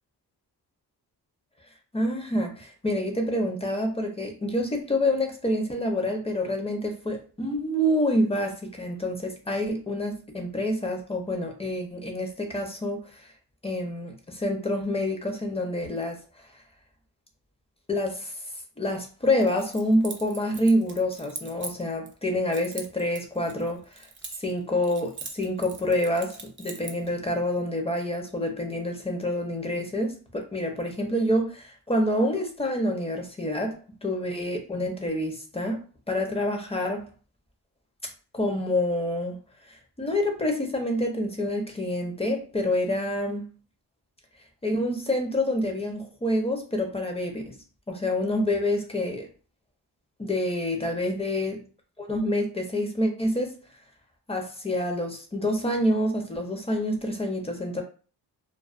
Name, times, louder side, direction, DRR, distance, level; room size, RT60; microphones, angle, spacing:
voice 1, 1.9-13.2 13.6-16.2 17.9-18.3 18.8-24.0 24.4-35.8 36.1-37.1 38.3-39.4 40.0-43.5 44.6-47.6 47.9-49.3 50.2-51.6 52.0-53.6 54.3-57.8, left 1 dB, 15° left, 3 dB, 0.6 m, -27 dB
Keys jangling, 19.4-22.1 22.5-24.6 24.8-27.1, right 4 dB, 30° right, 0.5 m, -41 dB
2.3 x 2.2 x 2.4 m, 0.37 s
cardioid pair, 75°, 40 cm